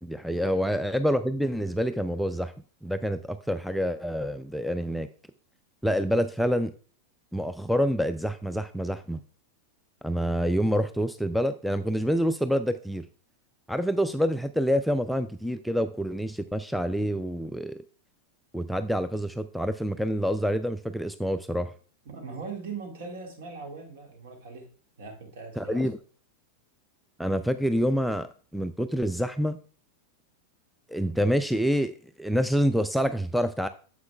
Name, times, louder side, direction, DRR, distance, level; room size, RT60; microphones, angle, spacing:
voice 1, 0.0-2.5 2.8-5.1 5.8-6.7 7.3-9.2 10.0-13.1 13.7-17.8 18.5-21.7 25.6-26.0 27.2-28.3 28.5-29.6 30.9-33.7, equal, ahead, 9 dB, 0.3 m, -27 dB
voice 2, 22.1-24.7 25.0-25.9, right 4 dB, 55° right, 4 dB, 1.9 m, -40 dB
9.4 x 7.1 x 2.3 m, 0.41 s
figure-of-eight pair, 90°, 0 cm